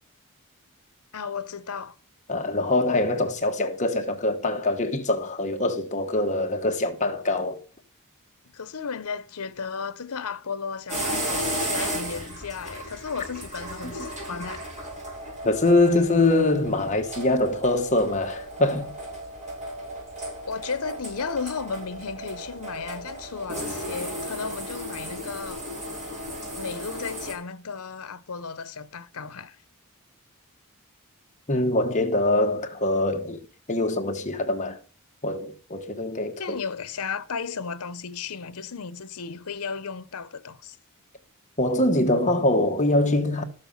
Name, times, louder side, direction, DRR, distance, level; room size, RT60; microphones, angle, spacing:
voice 1, 1.1-1.9 8.5-14.7 20.5-25.7 26.6-29.6 36.4-40.8, left 5 dB, 80° left, 0.8 m, -34 dB
voice 2, 2.3-7.6 15.4-18.9 31.5-33.4 33.7-34.8 35.2-36.6 41.6-43.4, left 2 dB, 35° left, 1.4 m, -23 dB
sound 1, 10.9-27.3, equal, 30° right, 5.8 m, -34 dB
13.0 x 6.8 x 5.5 m
head